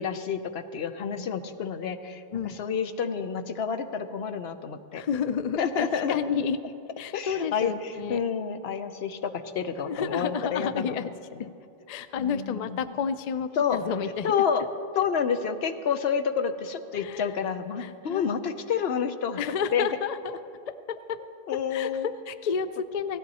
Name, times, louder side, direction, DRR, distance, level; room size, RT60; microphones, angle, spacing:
voice 1, 0.0-5.0 5.6-6.2 7.1-11.0 12.2-12.9 13.6-13.8 14.2-14.6 14.9-19.4 19.7-19.9 21.5-22.1, left 7 dB, 75° left, 9 dB, 1.0 m, -29 dB
voice 2, 2.3-2.6 4.9-8.2 9.9-11.1 11.4-11.5 11.9-14.3 16.9-17.4 17.8-18.3 19.4-20.4 20.7-21.2 21.5-23.2, left 7 dB, 50° left, 12 dB, 0.5 m, -31 dB
17.5 x 13.5 x 4.2 m, 2.8 s
omnidirectional pair, 1.0 m